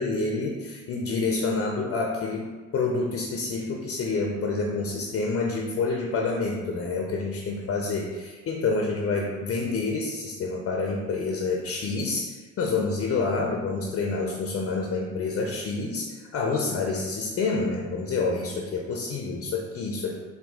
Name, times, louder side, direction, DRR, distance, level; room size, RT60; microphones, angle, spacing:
voice 1, 0.0-20.2, left 3 dB, 50° left, 0 dB, 0.5 m, -28 dB
4.3 x 2.3 x 3.5 m, 1.3 s
cardioid pair, 90°, 30 cm